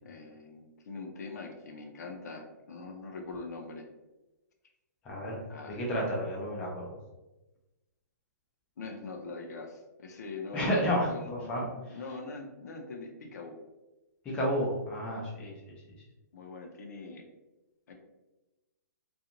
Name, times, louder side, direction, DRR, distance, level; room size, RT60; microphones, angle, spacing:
voice 1, 0.0-3.8 5.5-5.9 8.8-13.6 16.3-17.3 17.9-18.0, left 3 dB, 65° left, 3 dB, 0.6 m, -43 dB
voice 2, 5.0-5.4 5.7-7.0 10.5-11.7 14.2-15.5, equal, 10° left, -4 dB, 0.5 m, -31 dB
2.5 x 2.3 x 2.8 m, 1.0 s
hypercardioid pair, 175°, 10 cm